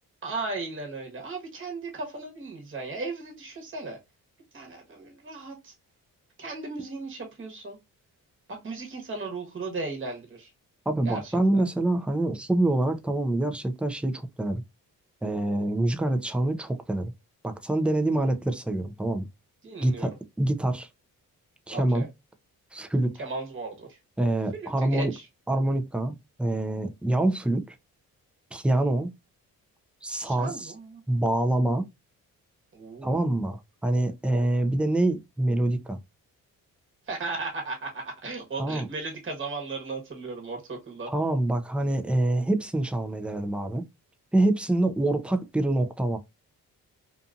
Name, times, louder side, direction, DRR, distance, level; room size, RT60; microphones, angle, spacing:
voice 1, 0.2-4.0 4.5-5.7 6.4-7.8 8.5-10.5 11.0-11.6 19.6-20.1 21.7-22.1 23.2-24.0 24.5-25.2 30.1-31.0 32.7-33.2 37.1-41.1, right 3 dB, 35° right, 1.1 m, -36 dB
voice 2, 10.9-14.6 15.2-17.1 17.4-19.3 19.8-20.9 21.7-22.1 22.7-23.2 24.2-25.1 25.5-27.8 28.5-29.1 30.0-30.7 31.1-31.8 33.0-36.0 38.6-38.9 41.1-43.8 44.3-46.2, right 1 dB, 5° right, 0.4 m, -26 dB
2.6 x 2.5 x 2.3 m
cardioid pair, 75°, 37 cm